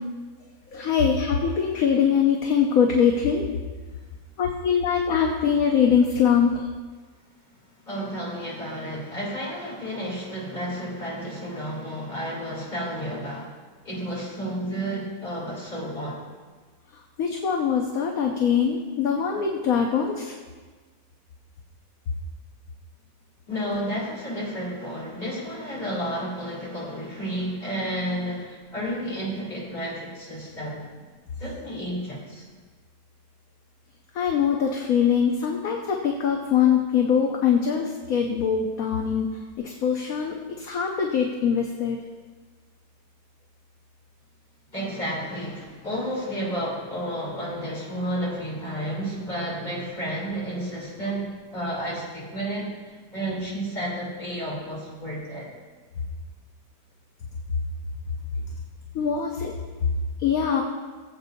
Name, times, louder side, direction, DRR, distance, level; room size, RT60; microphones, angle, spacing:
voice 1, 0.7-3.4 4.4-6.5 17.2-20.3 34.1-39.3 39.6-42.0 58.9-59.5 60.2-60.6, left 7 dB, 60° left, 1 dB, 1.2 m, -22 dB
voice 2, 7.9-13.5 13.8-16.2 23.5-30.8 31.4-32.4 44.7-52.7 53.1-55.5, equal, 25° left, -6 dB, 3.4 m, -31 dB
19.5 x 8.0 x 2.7 m, 1.4 s
omnidirectional pair, 1.8 m